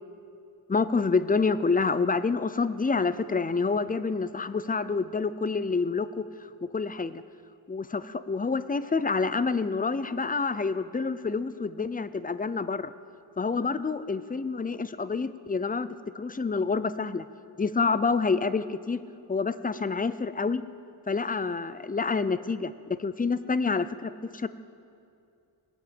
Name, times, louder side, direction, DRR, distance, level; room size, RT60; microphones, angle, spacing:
voice 1, 0.7-6.3 6.6-7.2 7.7-12.9 13.4-15.9 16.1-17.3 17.6-19.0 19.3-20.6 21.1-22.7 23.0-24.5, left 4 dB, 20° left, 14 dB, 0.4 m, -27 dB
21.0 x 7.2 x 8.7 m, 2.5 s
wide cardioid pair, 140°, 45 cm